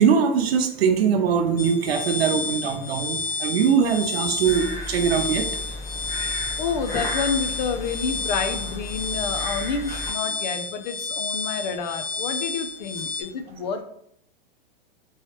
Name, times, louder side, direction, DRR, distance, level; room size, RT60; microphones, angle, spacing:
voice 1, 0.0-5.4, right 6 dB, 80° right, 5 dB, 0.7 m, -21 dB
sound 1, 1.6-13.2, left 4 dB, 75° left, 0.8 m, -31 dB
sound 2, 4.4-10.1, left 1 dB, 10° left, 0.7 m, -34 dB
voice 2, 6.3-13.8, left 5 dB, 50° left, 7 dB, 0.5 m, -29 dB
3.1 x 3.1 x 2.9 m, 0.70 s
supercardioid pair, 155°, 30 cm